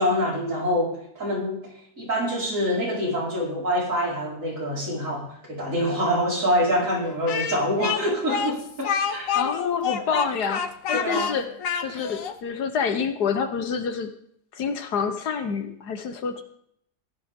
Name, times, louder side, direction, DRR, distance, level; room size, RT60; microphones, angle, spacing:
voice 1, 0.0-9.3 10.9-11.4, equal, 50° right, -4 dB, 5.2 m, -26 dB
Speech, 7.3-12.4, left 7 dB, 60° left, 1.2 m, -28 dB
voice 2, 9.3-11.5 11.8-14.1 14.5-16.4, left 6 dB, 75° left, 8 dB, 1.7 m, -27 dB
16.0 x 11.5 x 3.7 m, 0.69 s
omnidirectional pair, 1.7 m